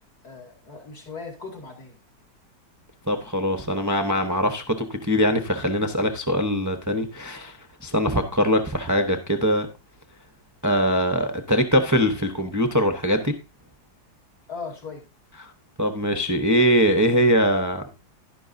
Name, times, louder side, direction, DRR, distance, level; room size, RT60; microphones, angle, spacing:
voice 1, 0.2-2.0 14.5-15.0, left 4 dB, 55° left, 1 dB, 2.8 m, -38 dB
voice 2, 3.1-9.7 10.6-13.3 15.4-15.5 15.8-17.8, equal, 20° right, 6 dB, 0.5 m, -22 dB
11.0 x 11.0 x 2.7 m, 0.27 s
omnidirectional pair, 2.0 m